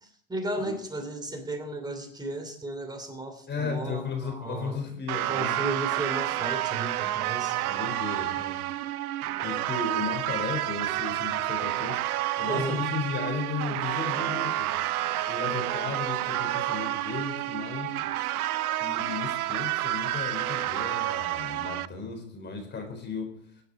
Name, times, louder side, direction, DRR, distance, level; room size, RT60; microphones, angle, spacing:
voice 1, 0.0-4.9 5.1-7.6 12.5-12.8, right 2 dB, 10° right, 6 dB, 3.0 m, -34 dB
voice 2, 3.5-5.6 7.5-8.6 9.4-12.0 12.4-14.7 15.3-18.0 18.8-23.3, left 5 dB, 25° left, 4 dB, 3.9 m, -35 dB
sound 1, 5.1-21.9, right 14 dB, 70° right, 0.7 m, -29 dB
20.5 x 8.1 x 5.2 m, 0.69 s
hypercardioid pair, 110°, 45 cm